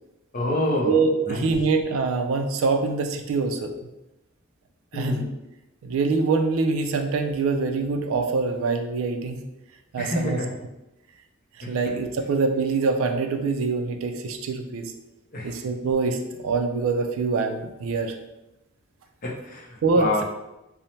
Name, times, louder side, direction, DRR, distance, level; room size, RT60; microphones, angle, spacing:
voice 1, 0.3-1.0 1.3-1.5 4.9-5.3 10.0-10.5 11.6-11.7 15.3-15.6 19.2-20.2, left 1 dB, 40° left, -1 dB, 0.5 m, -27 dB
voice 2, 0.8-3.7 4.9-5.2 5.8-9.4 9.9-10.4 11.6-14.9 15.4-18.2 19.8-20.2, right 4 dB, 70° right, 5 dB, 0.3 m, -24 dB
2.7 x 2.0 x 3.0 m, 0.94 s
head